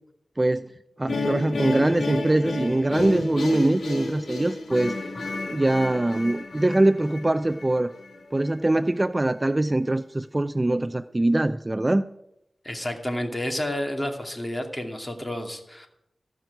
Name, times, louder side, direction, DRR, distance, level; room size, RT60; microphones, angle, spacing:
voice 1, 0.4-0.7 1.0-5.0 5.5-7.9 8.3-12.1, right 1 dB, 30° right, 12 dB, 0.5 m, -23 dB
sound 1, 1.1-8.2, left 2 dB, 80° left, 1.9 m, -31 dB
voice 2, 12.6-15.9, left 1 dB, 20° left, 4 dB, 2.5 m, -30 dB
14.0 x 6.1 x 9.2 m, 0.82 s
cardioid pair, 45°, 0 cm